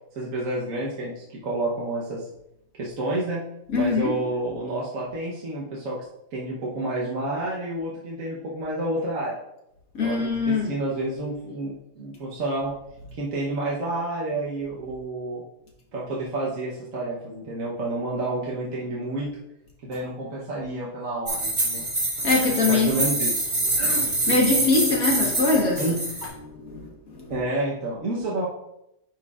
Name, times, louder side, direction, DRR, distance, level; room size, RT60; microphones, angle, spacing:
voice 1, 0.1-2.3 2.8-3.4 3.7-6.0 6.3-9.4 10.0-12.7 13.2-15.4 15.9-19.3 19.8-21.8 22.7-23.5 25.8-26.0 27.3-28.5, right 2 dB, 65° right, -5 dB, 1.4 m, -29 dB
voice 2, 3.7-4.1 9.9-10.7 22.2-23.0 23.9-25.8 26.5-26.9 27.2-27.3, left 3 dB, 80° left, -1 dB, 2.0 m, -23 dB
sound 1, 21.3-26.3, right 2 dB, 30° right, 1.7 m, -25 dB
10.5 x 4.6 x 2.4 m, 0.84 s
omnidirectional pair, 1.5 m